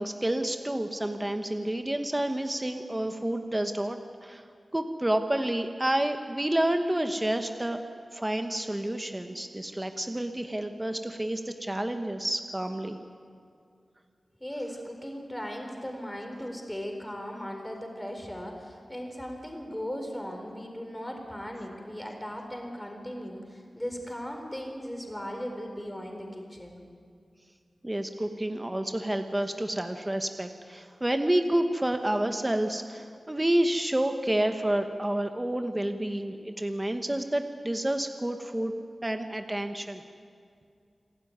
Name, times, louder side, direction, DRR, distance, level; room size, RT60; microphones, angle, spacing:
voice 1, 0.0-4.4 4.7-7.8 8.1-13.0 27.8-38.7 39.0-40.0, right 1 dB, 15° right, 6 dB, 1.1 m, -29 dB
voice 2, 14.4-26.8, equal, 10° left, 3 dB, 4.3 m, -38 dB
27.5 x 12.5 x 9.4 m, 2.3 s
wide cardioid pair, 90°, 0 cm